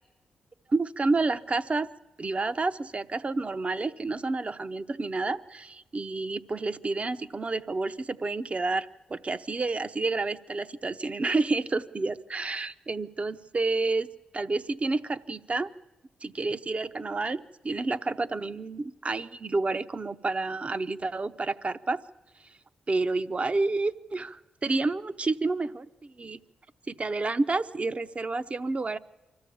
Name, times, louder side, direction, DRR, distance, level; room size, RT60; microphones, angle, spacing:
voice 1, 0.7-1.9 2.2-14.1 14.3-15.7 16.2-22.0 22.9-26.4 26.9-29.0, right 3 dB, 35° right, 12 dB, 0.7 m, -29 dB
24.5 x 14.0 x 8.5 m, 1.0 s
cardioid pair, 55°, 3 cm